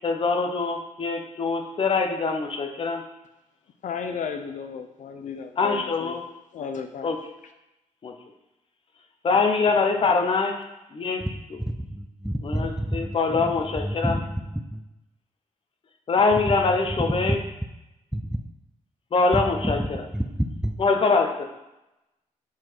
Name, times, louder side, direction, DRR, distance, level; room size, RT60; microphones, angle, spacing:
voice 1, 0.0-3.0 5.6-6.2 7.0-7.2 8.0-8.1 9.2-10.5 10.9-11.2 12.4-14.2 16.1-17.4 19.1-19.8 20.8-21.5, left 4 dB, 40° left, 4 dB, 0.9 m, -23 dB
voice 2, 3.8-6.2 6.5-7.1, left 6 dB, 75° left, 7 dB, 0.6 m, -34 dB
voice 3, 11.8-14.8 16.3-17.4 18.1-18.4 19.3-20.8, equal, 5° right, 5 dB, 0.4 m, -29 dB
7.5 x 4.0 x 4.5 m, 0.94 s
cardioid pair, 125°, 13 cm